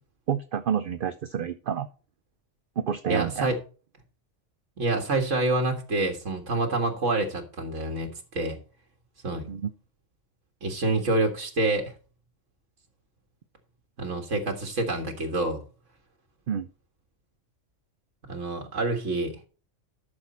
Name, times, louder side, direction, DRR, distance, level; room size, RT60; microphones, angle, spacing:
voice 1, 0.3-1.9 2.8-3.5 9.5-9.7 16.5-16.7, right 8 dB, 55° right, 0.7 m, -29 dB
voice 2, 3.1-3.6 4.8-8.6 9.2-9.5 10.6-11.9 14.0-15.6 18.2-19.4, right 2 dB, 75° right, 1.9 m, -27 dB
12.5 x 6.5 x 4.2 m
omnidirectional pair, 1.3 m